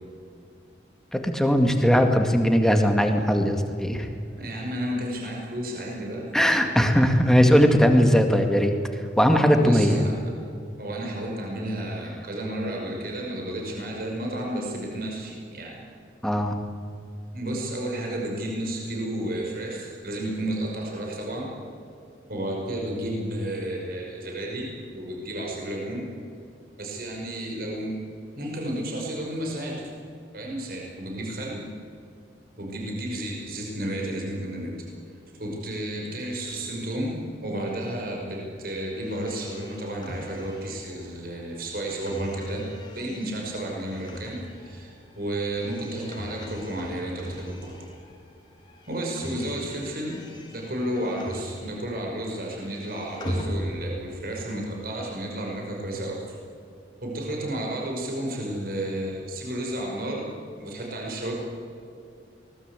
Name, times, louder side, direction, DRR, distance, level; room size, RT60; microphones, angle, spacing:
voice 1, 1.1-4.1 6.3-8.7 9.2-10.0 16.2-16.6, equal, 5° left, 4 dB, 2.1 m, -19 dB
voice 2, 4.3-6.3 9.5-10.2 10.8-15.8 17.3-21.5 22.3-24.7 24.9-26.1 26.8-28.0 28.3-29.8 30.3-31.7 32.6-34.7 35.4-42.6 43.0-47.8 48.9-50.2 50.5-56.2 57.0-60.3 60.6-61.3, right 1 dB, 50° right, -1 dB, 5.7 m, -32 dB
sound 1, 39.0-48.3 48.6-52.0 52.3-54.2, equal, 25° left, 3.0 m, -39 dB
24.0 x 19.5 x 8.4 m, 2.5 s
head